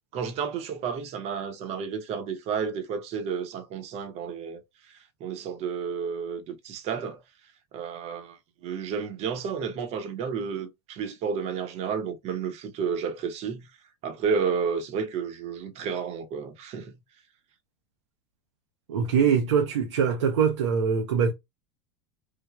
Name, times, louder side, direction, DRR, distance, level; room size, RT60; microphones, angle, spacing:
voice 1, 0.1-4.6 4.9-7.2 7.7-13.7 14.0-17.0, right 6 dB, 45° right, 0.7 m, -31 dB
voice 2, 18.9-21.3, right 6 dB, 85° right, 0.6 m, -23 dB
3.3 x 2.0 x 2.2 m
hypercardioid pair, 100°, 15 cm